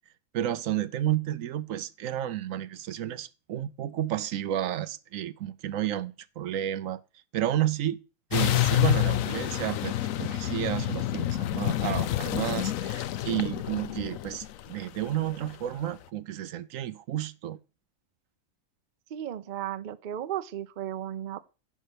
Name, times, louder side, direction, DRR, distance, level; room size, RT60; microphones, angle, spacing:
voice 1, 0.3-7.0 7.3-8.0 8.3-17.6, right 12 dB, 80° right, 1.0 m, -31 dB
sound 1, 8.3-15.7, left 13 dB, 80° left, 1.0 m, -28 dB
voice 2, 19.1-21.4, right 11 dB, 50° right, 0.6 m, -35 dB
10.0 x 5.6 x 5.0 m
omnidirectional pair, 1.4 m